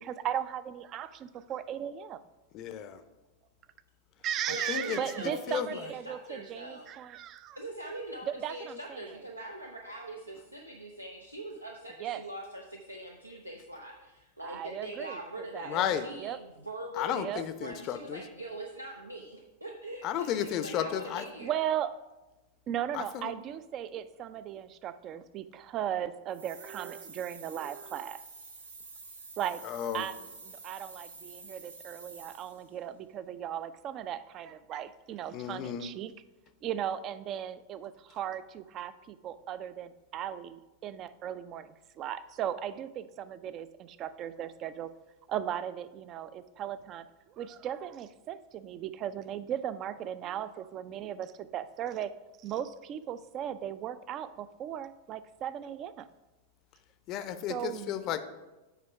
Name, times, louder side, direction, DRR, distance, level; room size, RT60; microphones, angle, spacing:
voice 1, 0.0-2.2 4.2-7.6 8.3-9.1 12.0-12.2 14.4-15.2 15.5-16.4 17.2-17.4 21.4-22.0 22.7-28.2 29.4-29.6 29.9-36.1 36.6-44.9 45.3-47.1 47.3-52.1 52.4-56.1 57.5-58.0, right 10 dB, 35° right, 14 dB, 0.4 m, -37 dB
voice 2, 2.5-3.0 4.7-5.0 5.5-5.7 15.7-16.1 17.0-18.2 20.0-21.2 22.9-23.3 29.6-30.0 35.3-35.9 57.1-58.2, left 10 dB, 40° left, 11 dB, 0.5 m, -33 dB
voice 3, 4.5-6.9 7.6-17.3 17.6-21.5, right 1 dB, 85° right, 1 dB, 0.6 m, -42 dB
sound 1, 26.3-32.7, right 4 dB, 70° right, 0.9 m, -49 dB
8.0 x 4.8 x 4.7 m, 1.1 s
figure-of-eight pair, 90°, 0 cm